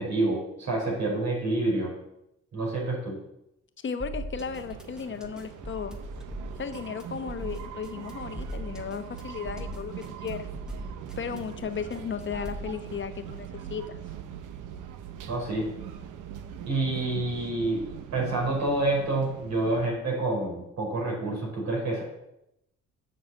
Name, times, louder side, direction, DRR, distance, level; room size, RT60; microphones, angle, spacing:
voice 1, 0.0-1.9 2.5-3.2 15.3-15.7 16.7-17.8 18.1-22.0, right 2 dB, 65° right, -1 dB, 4.3 m, -28 dB
voice 2, 3.8-6.0 6.6-10.5 11.2-14.0, left 6 dB, 40° left, 8 dB, 1.1 m, -35 dB
sound 1, 4.0-12.7, right 1 dB, ahead, 1.5 m, -40 dB
sound 2, 4.4-19.9, right 9 dB, 85° right, 0.9 m, -41 dB
7.8 x 6.0 x 7.3 m, 0.84 s
cardioid pair, 90°, 30 cm